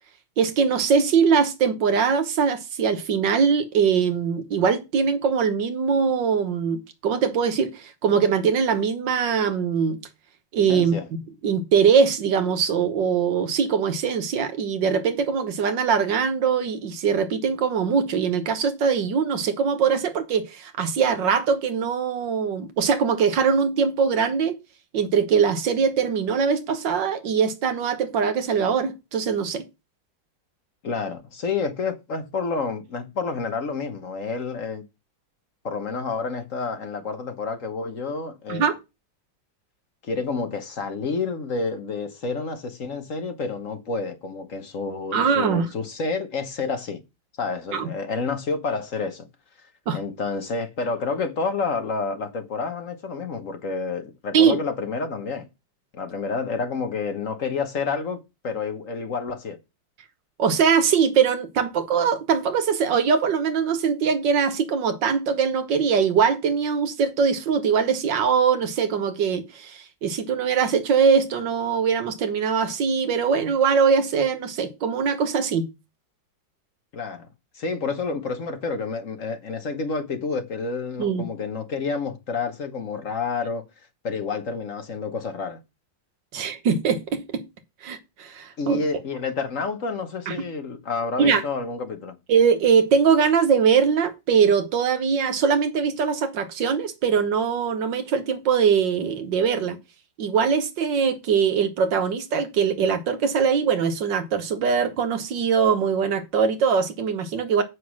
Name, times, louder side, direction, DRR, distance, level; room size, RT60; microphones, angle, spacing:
voice 1, 0.4-10.0 10.5-11.0 11.4-24.6 24.9-29.6 38.5-38.8 45.1-45.7 47.7-47.9 49.9-50.0 54.3-54.6 60.4-75.7 81.0-81.3 86.3-87.4 87.8-88.8 90.3-90.4 91.2-91.4 92.3-99.8 100.2-107.6, right 6 dB, 70° right, 1.8 m, -22 dB
voice 2, 10.7-11.1 30.8-34.8 35.6-38.7 40.0-47.0 47.4-49.3 49.9-55.5 55.9-59.6 76.9-77.3 77.5-83.6 84.0-85.6 88.6-92.1, left 4 dB, 50° left, 1.3 m, -29 dB
7.8 x 6.2 x 6.2 m
omnidirectional pair, 2.0 m